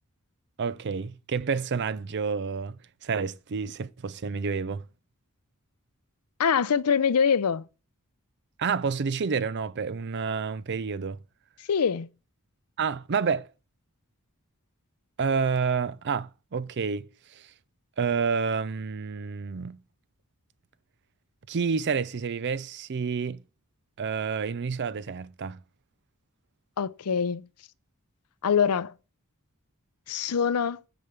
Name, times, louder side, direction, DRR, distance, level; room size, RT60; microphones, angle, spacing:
voice 1, 0.6-4.8 8.6-11.2 12.8-13.5 15.2-17.5 18.0-19.8 21.5-23.4 24.0-25.6, right 5 dB, 50° right, 0.5 m, -29 dB
voice 2, 6.4-7.7 11.7-12.1 26.8-27.5 28.4-28.9 30.1-30.8, left 6 dB, 85° left, 0.5 m, -24 dB
9.8 x 5.2 x 6.8 m
head